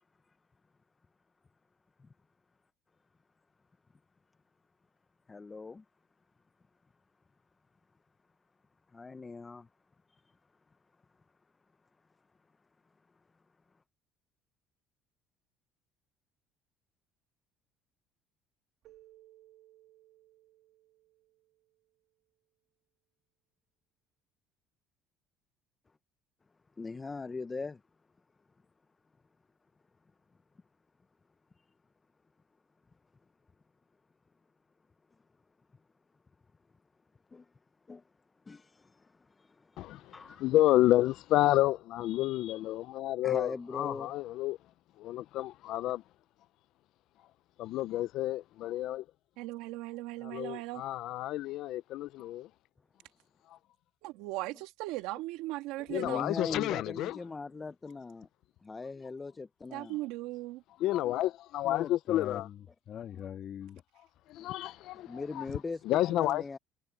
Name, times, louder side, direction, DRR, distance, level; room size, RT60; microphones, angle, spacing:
voice 1, 5.3-5.8 8.9-9.7 10.1-10.3 26.8-27.8 37.3-37.5 37.9-38.0 38.5-40.4 43.2-44.1 55.9-58.3 58.6-60.0 64.4-64.5 64.9-66.6, left 4 dB, 20° left, 0.8 m, -41 dB
Keyboard (musical), 18.8-22.0, right 15 dB, 55° right, 2.4 m, -61 dB
voice 2, 39.8-44.6 45.0-46.0 47.6-49.0 50.2-52.5 55.9-57.2 60.8-62.5 64.3-65.4 65.9-66.4, left 15 dB, 65° left, 0.5 m, -30 dB
voice 3, 49.4-50.8 54.0-56.2 59.7-60.6, right 18 dB, 80° right, 2.2 m, -38 dB
voice 4, 61.6-63.8, left 9 dB, 50° left, 1.8 m, -41 dB
cardioid pair, 105°, 0 cm